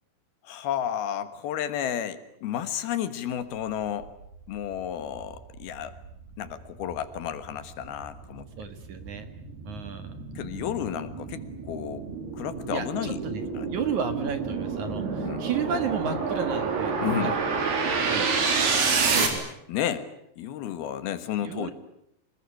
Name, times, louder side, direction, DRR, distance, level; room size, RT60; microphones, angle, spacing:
voice 1, 0.4-4.1 4.5-5.9 6.4-8.5 10.4-12.0 12.3-13.2 13.5-13.7 15.2-15.4 17.0-17.4 19.0-19.3 19.7-20.1 20.4-21.7, left 10 dB, 75° left, 12 dB, 3.3 m, -32 dB
sound 1, 4.6-4.7 5.2-19.3, right 5 dB, 80° right, 5.7 m, -29 dB
voice 2, 8.6-9.3 9.6-10.2 12.7-13.4 13.7-16.9 17.2-17.4 18.0-18.3 19.1-19.5 21.4-21.7, right 6 dB, 55° right, 9 dB, 2.7 m, -32 dB
25.5 x 21.0 x 9.9 m, 0.77 s
omnidirectional pair, 4.6 m